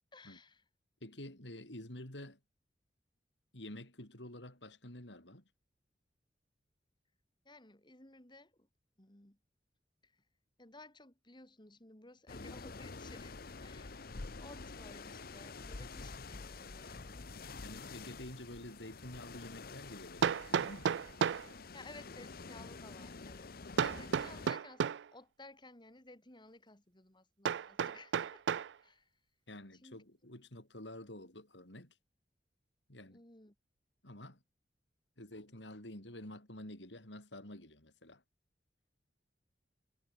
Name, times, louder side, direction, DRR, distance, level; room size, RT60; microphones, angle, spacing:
voice 1, 0.1-0.6 7.5-8.7 9.0-9.4 10.0-10.2 10.6-14.1 14.4-17.3 21.7-28.4 28.8-29.1 29.8-30.0 33.1-33.6, left 2 dB, 25° left, 3.4 m, -56 dB
voice 2, 1.0-2.4 3.5-5.4 17.6-20.9 29.5-32.0 32.9-33.2 34.0-34.4 35.2-38.2, left 1 dB, 85° left, 6.7 m, -49 dB
sound 1, 12.3-24.5, left 3 dB, 55° left, 1.0 m, -48 dB
Hammer, 18.6-18.7 20.2-21.5 23.8-25.1 27.4-28.7, right 7 dB, 75° right, 0.4 m, -33 dB
head